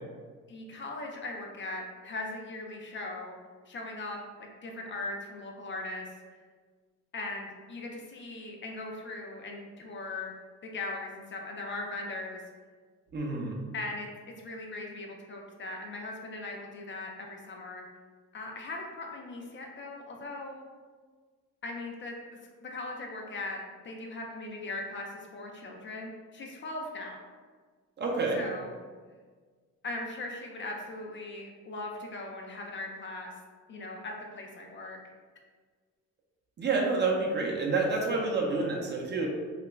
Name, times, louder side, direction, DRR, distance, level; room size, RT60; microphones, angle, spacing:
voice 1, 0.5-3.4 3.7-6.1 7.1-10.3 10.6-12.4 13.7-14.1 14.4-17.9 18.3-20.7 21.6-22.1 22.6-27.2 28.3-28.7 29.8-33.3 33.7-35.0, left 2 dB, 40° left, 1 dB, 0.4 m, -39 dB
voice 2, 13.1-13.6 28.0-28.4 36.6-39.3, right 3 dB, 35° right, -1 dB, 0.6 m, -28 dB
2.4 x 2.1 x 3.1 m, 1.5 s
cardioid pair, 90°, 30 cm